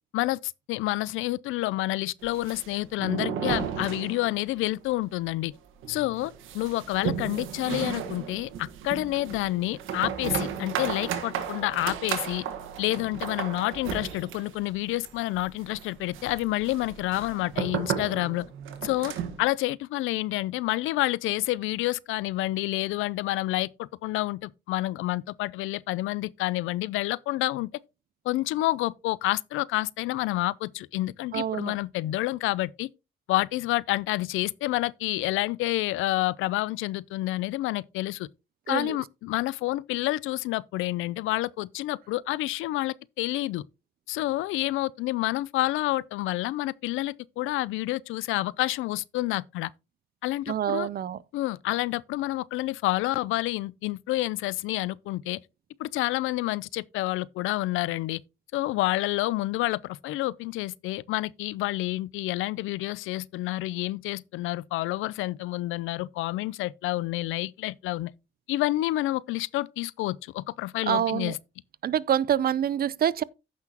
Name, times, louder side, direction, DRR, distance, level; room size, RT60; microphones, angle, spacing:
voice 1, 0.1-5.5 5.9-12.4 12.8-18.5 18.8-19.1 19.4-27.7 28.2-32.9 33.3-38.3 38.7-43.6 44.1-49.7 50.2-50.9 51.3-55.4 55.8-58.2 58.5-68.1 68.5-71.4, left 17 dB, 90° left, 0.4 m, -29 dB
sound 1, 2.2-4.6 4.8-4.9 5.3-5.4 5.8-19.5, right 8 dB, 85° right, 1.5 m, -34 dB
voice 2, 31.3-31.7 38.7-39.0 50.5-51.2 70.9-71.3 71.8-73.2, right 9 dB, 50° right, 0.5 m, -26 dB
14.5 x 5.9 x 2.9 m
cardioid pair, 90°, 20 cm